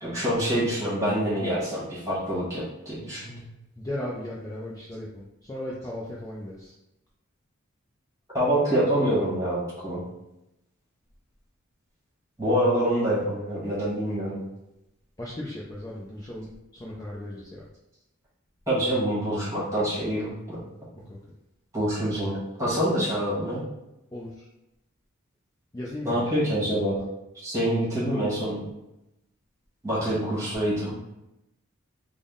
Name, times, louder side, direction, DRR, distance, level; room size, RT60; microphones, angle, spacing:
voice 1, 0.0-3.4 8.3-10.0 12.4-14.4 18.7-20.6 21.7-23.6 26.0-27.0 27.4-28.6 29.8-30.9, equal, 15° right, -8 dB, 1.3 m, -26 dB
voice 2, 3.8-6.7 15.2-17.7 21.1-21.2 24.1-24.3 25.7-26.4, left 1 dB, 15° left, -5 dB, 0.3 m, -36 dB
3.6 x 2.0 x 3.6 m, 0.90 s
head